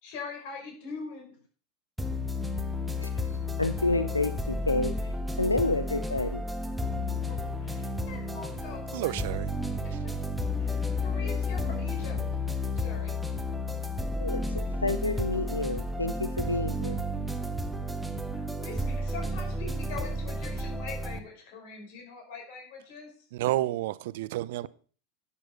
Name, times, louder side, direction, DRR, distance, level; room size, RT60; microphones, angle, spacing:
voice 1, 0.0-1.4 7.3-9.4 9.8-9.9 10.6-12.2 12.7-13.1 18.3-23.1, left 4 dB, 55° left, 5.8 m, -43 dB
sound 1, 2.0-21.2, left 1 dB, 5° right, 1.3 m, -32 dB
voice 2, 3.0-6.4 14.2-17.0, left 2 dB, 90° left, 0.6 m, -30 dB
voice 3, 8.9-9.5 23.3-24.7, right 16 dB, 60° right, 0.5 m, -30 dB
11.0 x 8.9 x 5.6 m
figure-of-eight pair, 85°, 0 cm